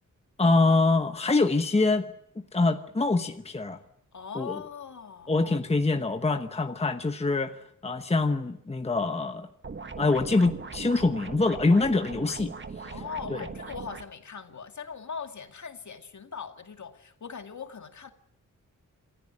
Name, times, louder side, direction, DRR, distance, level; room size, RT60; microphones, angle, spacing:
voice 1, 0.4-2.1 2.4-3.8 4.3-4.5 5.3-9.5 10.0-12.5 12.8-12.9 13.3-13.4, left 3 dB, 20° left, 1.1 m, -25 dB
voice 2, 4.1-5.3 12.8-18.1, left 6 dB, 60° left, 2.3 m, -40 dB
sound 1, 9.6-14.0, right 4 dB, 35° right, 1.3 m, -39 dB
27.0 x 15.0 x 9.8 m
wide cardioid pair, 130°, 33 cm